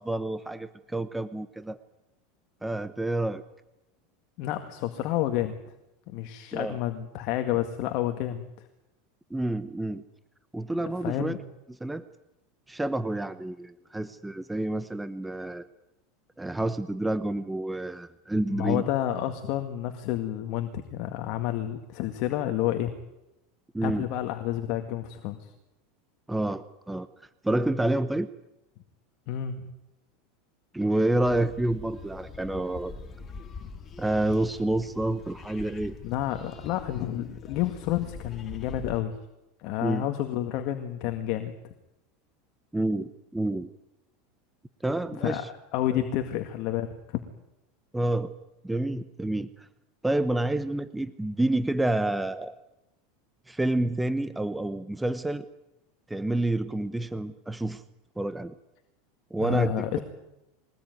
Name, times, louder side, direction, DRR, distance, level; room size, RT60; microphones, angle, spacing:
voice 1, 0.0-1.8 2.6-3.4 6.5-6.8 9.3-10.0 10.5-11.4 11.7-12.0 12.7-15.6 16.4-18.8 23.7-24.1 26.3-27.1 27.4-28.3 30.7-32.9 34.0-35.9 39.8-40.1 42.7-43.7 44.8-45.5 45.9-46.0 47.9-48.3 48.6-49.7 50.0-52.5 53.5-55.5 56.1-57.8 58.2-58.5 59.3-60.0, right 1 dB, 5° right, 12 dB, 0.9 m, -28 dB
voice 2, 4.4-5.5 6.1-8.7 10.7-11.4 18.5-22.9 23.8-25.5 29.3-29.6 36.0-39.2 39.6-41.5 45.2-45.4 45.7-47.2 59.4-60.0, left 12 dB, 50° left, 6 dB, 2.0 m, -30 dB
sound 1, 31.2-39.0, left 5 dB, 25° left, 2.3 m, -43 dB
22.5 x 19.5 x 9.5 m, 0.92 s
supercardioid pair, 145°, 0 cm